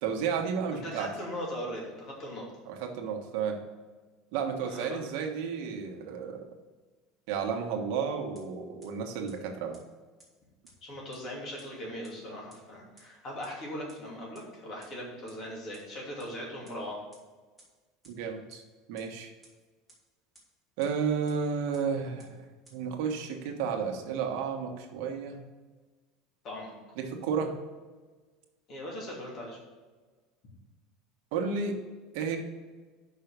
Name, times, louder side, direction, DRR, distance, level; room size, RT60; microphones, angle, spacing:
voice 1, 0.0-1.1 2.6-3.6 4.3-6.4 7.3-9.8 18.0-18.6 18.9-19.3 20.8-22.4 22.7-25.4 27.0-27.6 31.3-31.8 32.1-32.4, right 6 dB, 65° right, 3 dB, 1.3 m, -32 dB
voice 2, 0.7-2.5 4.6-5.0 10.8-17.0 26.4-26.7 28.7-29.6, equal, 40° left, -3 dB, 2.7 m, -39 dB
sound 1, 8.3-8.4 8.8-8.9 9.3-9.4 9.7-9.8 10.2-10.3 10.6-10.7 11.1-11.2 11.6-11.7 12.0-12.1 12.5-12.6 13.0-13.1 13.4-13.5 13.9-14.0 14.3-14.4 14.8-14.9 15.3-15.4 15.7-15.8 16.2-16.3 16.6-16.7 17.1-17.2 17.6-17.7 18.0-18.1 18.5-18.6 19.0-19.1 19.4-19.5 19.9-20.0 20.3-20.4 20.8-20.9 21.3-21.4 21.7-21.8 22.2-22.3 22.6-22.7, right 2 dB, ahead, 2.3 m, -55 dB
6.0 x 5.6 x 6.7 m, 1.3 s
cardioid pair, 155°, 0 cm